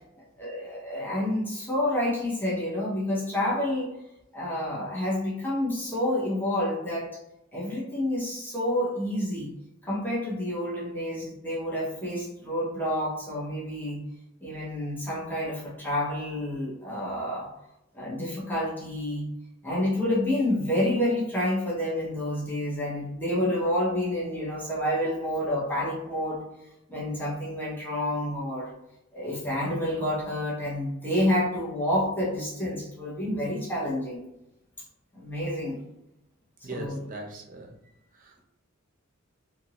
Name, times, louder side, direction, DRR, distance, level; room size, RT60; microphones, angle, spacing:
voice 1, 0.4-3.9 4.3-7.1 7.5-9.5 9.8-14.0 14.4-17.5 17.9-19.3 19.6-26.4 26.9-28.7 29.1-34.2 35.1-35.8 36.7-37.0, left 1 dB, 10° left, -7 dB, 0.9 m, -29 dB
voice 2, 36.6-37.7 38.1-38.4, right 2 dB, 40° right, 1 dB, 0.5 m, -40 dB
2.7 x 2.6 x 2.9 m, 0.86 s
head